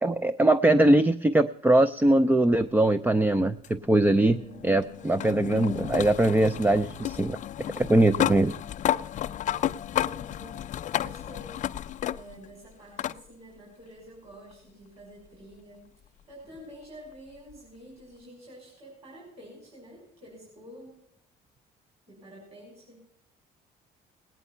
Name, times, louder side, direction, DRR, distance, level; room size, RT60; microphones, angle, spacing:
voice 1, 0.0-4.4 4.6-7.4 7.8-8.5, right 1 dB, 10° right, 12 dB, 0.4 m, -22 dB
sound 1, 3.6-12.5 13.0-13.2 14.5-14.6 17.5-17.6, left 11 dB, 45° left, 0.4 m, -32 dB
voice 2, 4.1-4.7 4.9-5.4 10.0-10.6 10.9-11.6 12.1-15.8 16.3-21.0 22.1-23.0, equal, 35° right, -2 dB, 5.6 m, -48 dB
18.5 x 9.2 x 5.5 m, 0.76 s
cardioid pair, 110°, 17 cm